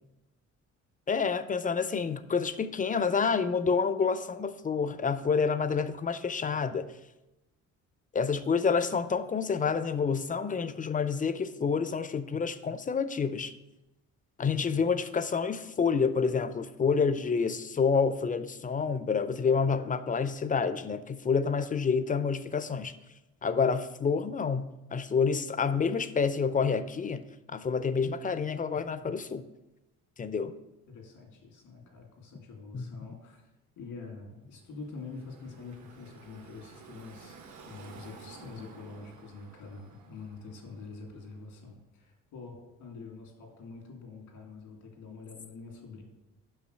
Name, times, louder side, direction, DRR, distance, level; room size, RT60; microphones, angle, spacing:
voice 1, 1.1-6.9 8.1-13.5 14.4-22.9 23.4-29.4 30.2-30.5 32.7-32.8, left 5 dB, 25° left, 13 dB, 0.5 m, -28 dB
voice 2, 14.4-14.8 30.9-33.4 33.8-37.4 37.7-46.0, left 4 dB, 90° left, 2 dB, 2.1 m, -46 dB
Car passing by / Traffic noise roadway noise, 34.6-41.5, right 4 dB, 70° right, 1.3 m, -53 dB
5.9 x 5.7 x 6.4 m, 0.97 s
cardioid pair, 90°, 30 cm